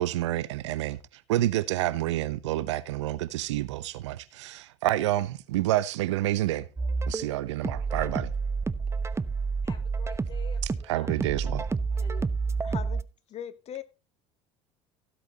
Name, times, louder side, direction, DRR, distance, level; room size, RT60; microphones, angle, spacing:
voice 1, 0.0-6.7 7.1-8.3 10.9-11.7, right 15 dB, 80° right, 0.9 m, -28 dB
sound 1, 6.8-13.0, right 4 dB, 20° right, 0.9 m, -29 dB
voice 2, 9.3-11.4 12.0-12.2, left 6 dB, 30° left, 6.2 m, -49 dB
voice 3, 12.6-13.0 13.3-13.8, left 10 dB, 45° left, 1.7 m, -39 dB
16.5 x 8.1 x 2.9 m
hypercardioid pair, 75°, 15 cm